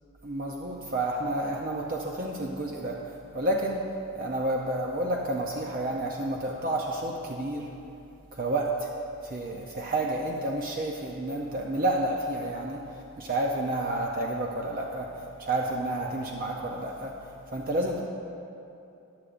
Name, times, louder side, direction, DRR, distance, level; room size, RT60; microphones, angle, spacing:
voice 1, 0.2-3.0 3.3-3.8 4.2-7.7 8.3-8.7 9.3-12.8 13.2-15.1 15.4-17.1 17.5-18.0, right 1 dB, 40° right, -1 dB, 0.6 m, -30 dB
14.5 x 9.9 x 2.5 m, 2.8 s
head